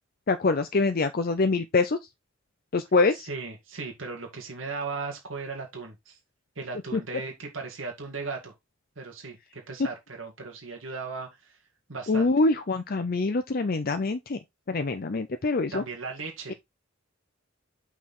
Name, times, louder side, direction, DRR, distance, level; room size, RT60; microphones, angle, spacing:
voice 1, 0.3-2.0 2.7-3.3 6.9-7.0 12.1-14.4 14.7-15.8, left 3 dB, 50° left, 0.6 m, -25 dB
voice 2, 3.1-6.2 6.6-8.5 9.0-11.6 11.9-12.3 15.7-16.5, right 4 dB, 80° right, 2.0 m, -37 dB
5.8 x 4.7 x 4.2 m
head